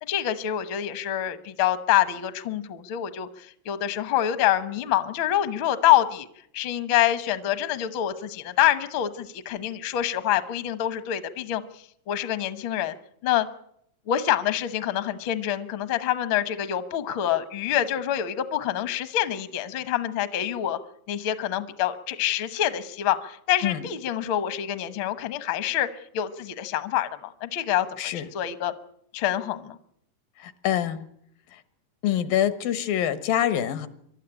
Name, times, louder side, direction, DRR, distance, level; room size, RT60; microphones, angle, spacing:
voice 1, 0.0-6.3 6.5-12.9 13.2-13.5 14.1-20.8 21.1-27.9 28.1-28.7 29.1-29.8, left 12 dB, 65° left, 12 dB, 1.2 m, -26 dB
voice 2, 30.4-31.1 31.5-31.6 32.0-33.9, left 11 dB, 85° left, 13 dB, 2.9 m, -25 dB
25.0 x 12.5 x 10.0 m, 0.71 s
omnidirectional pair, 4.0 m